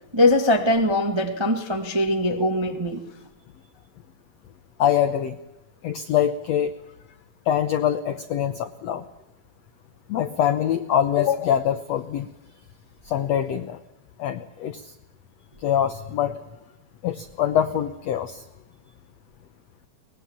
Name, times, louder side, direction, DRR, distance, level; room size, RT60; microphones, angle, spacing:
voice 1, 0.1-3.0, left 1 dB, 25° right, 4 dB, 0.6 m, -21 dB
voice 2, 4.8-5.4 5.8-6.7 7.4-9.0 10.1-12.3 13.0-13.8 14.2-14.9 15.6-16.4 17.0-18.4, left 10 dB, 85° left, 11 dB, 1.5 m, -24 dB
23.0 x 20.0 x 7.2 m, 0.96 s
omnidirectional pair, 4.2 m